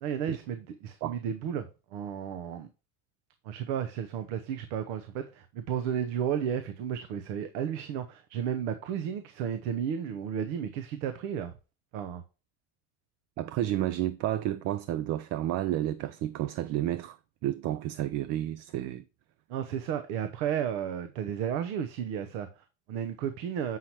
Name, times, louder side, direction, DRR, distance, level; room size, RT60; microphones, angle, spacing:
voice 1, 0.0-2.7 3.4-11.5 11.9-12.2 19.5-23.8, right 8 dB, 85° right, 0.9 m, -33 dB
voice 2, 13.4-17.2 17.4-19.0, right 13 dB, 50° right, 0.4 m, -31 dB
7.5 x 5.7 x 3.0 m
cardioid pair, 160°, 36 cm